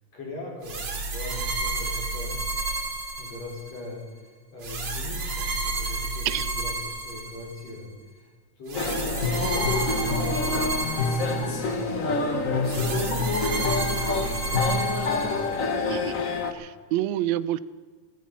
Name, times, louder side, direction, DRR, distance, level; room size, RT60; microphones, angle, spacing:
voice 1, 0.1-2.4 3.2-8.3 8.6-15.4, left 2 dB, 55° left, -2 dB, 6.2 m, -40 dB
sound 1, 0.6-3.8 4.6-7.7 8.7-11.8 12.7-15.8, right 3 dB, 40° right, 2.5 m, -31 dB
sound 2, 8.7-16.5, left 3 dB, 80° left, 0.7 m, -26 dB
voice 2, 16.5-17.6, right 14 dB, 80° right, 16 dB, 1.6 m, -27 dB
16.0 x 15.5 x 5.8 m, 1.5 s
omnidirectional pair, 3.6 m